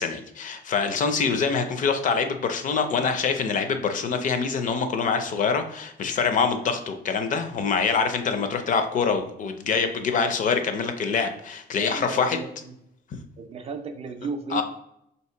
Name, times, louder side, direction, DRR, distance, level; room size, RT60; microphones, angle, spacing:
voice 1, 0.0-12.4 14.5-14.6, left 5 dB, 50° left, 8 dB, 0.4 m, -25 dB
voice 2, 11.7-12.8 13.4-14.6, right 4 dB, 35° right, 6 dB, 0.4 m, -34 dB
3.0 x 2.8 x 4.3 m, 0.76 s
cardioid pair, 175°, 17 cm